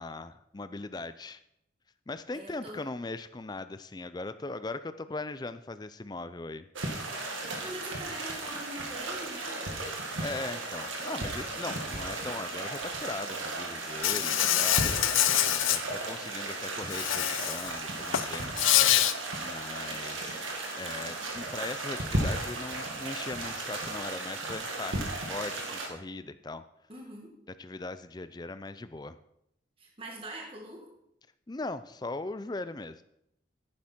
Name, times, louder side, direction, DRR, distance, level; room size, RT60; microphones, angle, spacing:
voice 1, 0.0-1.4 2.1-6.7 9.8-14.8 15.7-25.0 25.3-26.6 27.6-29.2 31.5-33.0, left 2 dB, 20° left, 13 dB, 0.4 m, -39 dB
voice 2, 2.3-2.8 7.3-9.6 14.3-15.2 26.9-27.3 29.8-30.9, right 1 dB, 30° right, -1 dB, 1.7 m, -43 dB
sound 1, 6.8-25.9, right 2 dB, 85° right, 2.0 m, -35 dB
Insect, 14.0-15.8 16.9-17.7 18.0-19.1, left 12 dB, 85° left, 0.6 m, -25 dB
11.0 x 9.6 x 4.4 m, 0.78 s
head